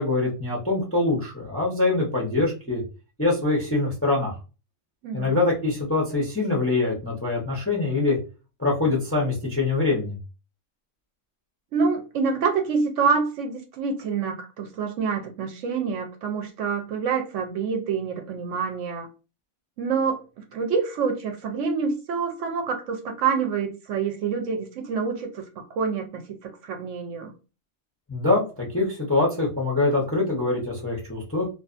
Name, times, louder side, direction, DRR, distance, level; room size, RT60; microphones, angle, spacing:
voice 1, 0.0-2.8 3.2-4.3 5.1-8.2 8.6-10.1 28.1-31.5, left 3 dB, 15° left, 0.5 m, -24 dB
voice 2, 5.0-5.4 11.7-19.1 19.8-20.2 20.5-25.4 25.7-27.3, right 5 dB, 70° right, 0.8 m, -27 dB
2.5 x 2.4 x 2.4 m
omnidirectional pair, 1.5 m